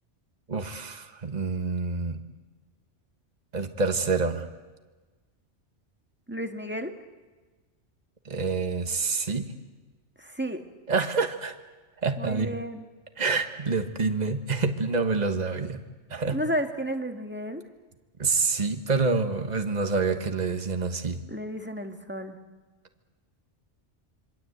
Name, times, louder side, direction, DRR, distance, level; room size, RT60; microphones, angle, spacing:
voice 1, 0.5-2.2 3.5-4.5 8.2-9.5 10.9-11.5 12.0-12.6 13.2-15.8 16.1-16.4 18.2-21.2, right 4 dB, 40° right, 7 dB, 1.5 m, -27 dB
voice 2, 6.3-6.9 10.2-10.6 12.2-12.8 16.3-17.6 21.3-22.4, equal, 10° right, 5 dB, 1.7 m, -32 dB
26.5 x 23.5 x 8.1 m, 1.3 s
omnidirectional pair, 1.2 m